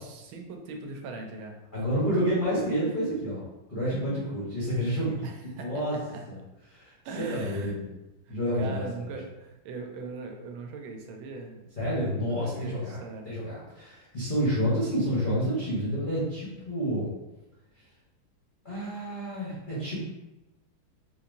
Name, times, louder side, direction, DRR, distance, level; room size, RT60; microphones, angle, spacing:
voice 1, 0.0-1.6 5.2-6.3 7.0-7.8 8.3-11.7 12.2-13.3, right 3 dB, 90° right, 3 dB, 1.4 m, -40 dB
voice 2, 1.7-3.4 3.7-6.0 6.3-6.4 6.7-7.9 8.3-9.1 11.8-17.1 18.6-20.0, equal, 40° left, -10 dB, 0.8 m, -29 dB
4.1 x 2.9 x 2.5 m, 1.0 s
omnidirectional pair, 2.2 m